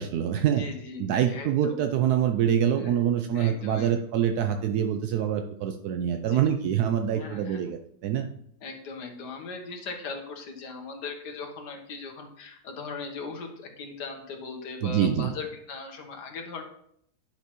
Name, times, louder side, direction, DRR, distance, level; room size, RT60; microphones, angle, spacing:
voice 1, 0.0-0.6 1.0-8.3 14.8-15.3, right 9 dB, 75° right, 6 dB, 1.1 m, -25 dB
voice 2, 0.6-1.8 2.8-2.9 3.3-3.9 6.1-6.4 7.2-7.7 8.6-16.6, left 4 dB, 80° left, 4 dB, 1.7 m, -39 dB
10.0 x 5.9 x 3.0 m, 0.69 s
omnidirectional pair, 1.8 m